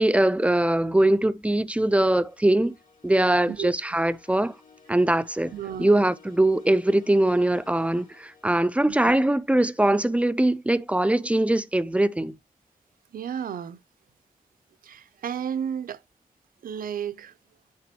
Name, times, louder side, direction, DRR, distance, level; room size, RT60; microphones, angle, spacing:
voice 1, 0.0-2.7 3.0-4.5 4.9-5.5 5.8-12.4, right 1 dB, 10° right, 0.3 m, -22 dB
sound 1, 2.0-9.0, left 5 dB, 70° left, 2.6 m, -55 dB
voice 2, 5.5-6.0 8.9-9.1 13.1-13.8 14.8-16.0 16.6-17.3, right 8 dB, 80° right, 0.5 m, -33 dB
9.8 x 3.4 x 2.9 m
wide cardioid pair, 170°, 14 cm